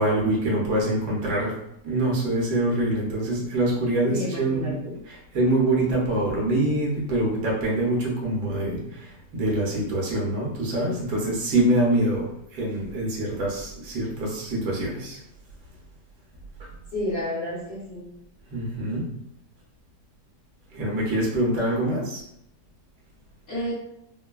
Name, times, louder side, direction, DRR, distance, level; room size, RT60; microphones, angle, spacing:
voice 1, 0.0-1.5 1.8-4.7 5.3-12.3 12.5-15.2 18.5-19.1 20.7-22.2, right 1 dB, 70° right, -4 dB, 1.3 m, -25 dB
voice 2, 4.0-4.9 16.9-18.1 23.5-23.7, left 1 dB, 60° left, -10 dB, 1.3 m, -30 dB
3.1 x 2.1 x 2.2 m, 0.78 s
omnidirectional pair, 1.9 m